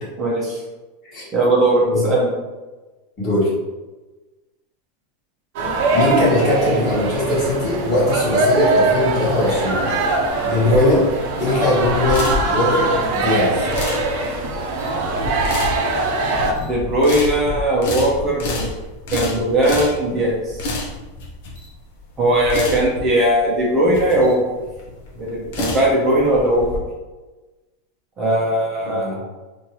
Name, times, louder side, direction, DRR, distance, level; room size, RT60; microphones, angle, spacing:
voice 1, 0.2-0.6 1.3-2.3 16.5-18.7 19.1-20.7 22.2-24.4 25.2-26.6 28.2-29.2, right 1 dB, 20° right, -5 dB, 0.8 m, -19 dB
voice 2, 3.2-3.5 5.9-9.9 10.4-11.1 11.4-13.6 28.8-29.2, left 1 dB, 25° left, -9 dB, 1.4 m, -20 dB
sound 1, 5.5-16.5, right 2 dB, 50° right, 0.7 m, -21 dB
sound 2, 10.3-26.8, left 2 dB, 60° left, 0.9 m, -29 dB
4.4 x 2.7 x 3.1 m, 1.2 s
supercardioid pair, 165°, 0 cm